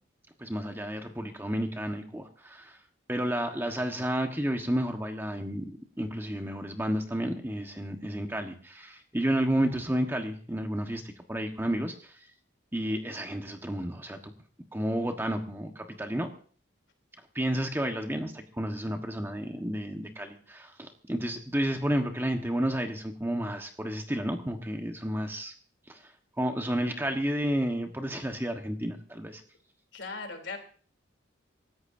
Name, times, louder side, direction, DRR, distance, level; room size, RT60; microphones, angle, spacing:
voice 1, 0.4-2.8 3.1-11.0 11.3-12.1 12.7-14.3 14.7-16.3 17.3-25.5 25.9-26.0 26.4-29.4, equal, 10° right, 4 dB, 1.4 m, -31 dB
voice 2, 29.9-30.6, left 4 dB, 65° left, 5 dB, 3.4 m, -38 dB
26.5 x 14.0 x 2.7 m, 0.43 s
head